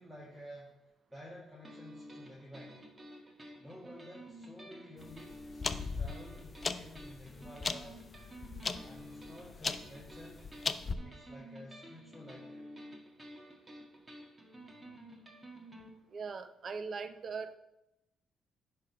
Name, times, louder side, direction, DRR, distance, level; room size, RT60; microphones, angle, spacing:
voice 1, 0.0-2.8 3.6-8.0 8.8-10.4 11.0-12.7, equal, 5° right, -6 dB, 2.0 m, -52 dB
sound 1, 1.6-15.9, equal, 20° right, 1.5 m, -51 dB
sound 2, 5.0-10.9, left 4 dB, 35° left, 0.5 m, -39 dB
voice 2, 16.1-17.6, right 5 dB, 50° right, 10 dB, 0.6 m, -40 dB
9.9 x 3.5 x 5.8 m, 0.89 s
cardioid pair, 90°, 0 cm